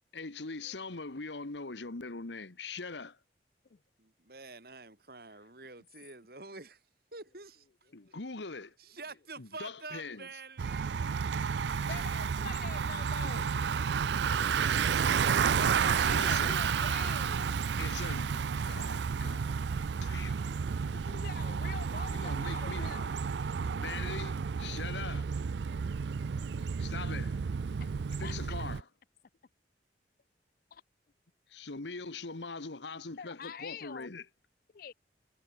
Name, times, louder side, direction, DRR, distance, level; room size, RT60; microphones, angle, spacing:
voice 1, 0.1-3.2 7.9-8.8 9.4-10.3 11.9-12.0 13.2-13.3 16.1-16.6 17.8-19.5 20.0-20.4 22.1-22.9 23.7-25.3 26.8-27.4 28.2-28.9 31.5-34.3, left 4 dB, 80° left, 1.4 m, -42 dB
voice 2, 4.0-6.8 7.1-7.6 8.8-10.9 11.7-11.8, right 3 dB, 55° right, 3.2 m, -47 dB
Bicycle, 10.6-28.8, right 6 dB, 75° right, 0.4 m, -31 dB
voice 3, 11.5-13.6 15.6-17.7 20.9-23.1 27.8-27.9 28.2-28.4 30.7-30.8 33.2-34.1 34.7-34.9, left 6 dB, 55° left, 0.4 m, -46 dB
head